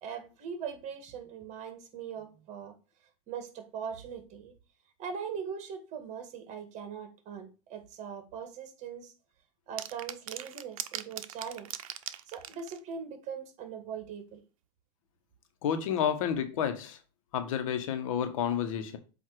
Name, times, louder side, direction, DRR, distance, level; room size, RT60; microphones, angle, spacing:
voice 1, 0.0-2.8 3.3-4.5 5.0-9.1 9.7-11.7 12.3-14.4, right 7 dB, 40° right, 1.7 m, -40 dB
sound 1, 9.8-12.8, right 11 dB, 80° right, 0.7 m, -39 dB
voice 2, 15.6-17.0 17.3-19.0, left 8 dB, 70° left, 1.3 m, -30 dB
7.8 x 2.9 x 4.7 m
hypercardioid pair, 120°, 18 cm